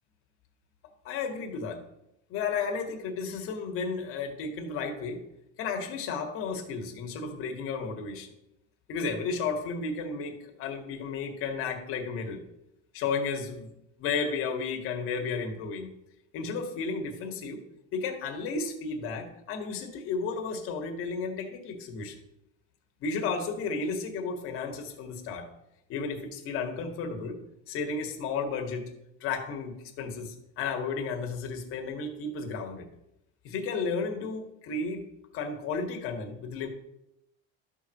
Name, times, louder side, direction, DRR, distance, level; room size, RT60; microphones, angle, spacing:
voice 1, 1.0-1.8 2.3-5.2 5.6-8.3 8.9-12.4 12.9-13.7 14.0-15.9 16.3-17.6 17.9-22.2 23.0-25.5 25.9-27.4 27.7-28.9 29.2-32.9 33.4-35.1 35.3-36.7, left 4 dB, 45° left, 3 dB, 2.0 m, -33 dB
12.5 x 4.7 x 6.5 m, 0.84 s
cardioid pair, 165°, 30 cm